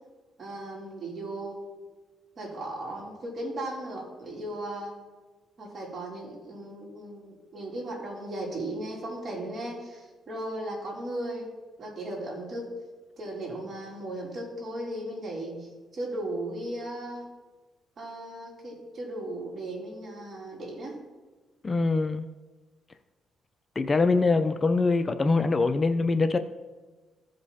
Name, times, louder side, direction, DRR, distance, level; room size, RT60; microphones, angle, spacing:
voice 1, 0.4-1.6 2.4-4.9 5.6-11.5 11.8-12.7 13.2-17.2 18.0-21.0, right 1 dB, 45° right, -3 dB, 3.5 m, -36 dB
voice 2, 21.6-22.3 23.8-26.4, left 3 dB, 30° left, 10 dB, 0.5 m, -23 dB
15.0 x 5.3 x 4.2 m, 1.3 s
cardioid pair, 90°, 0 cm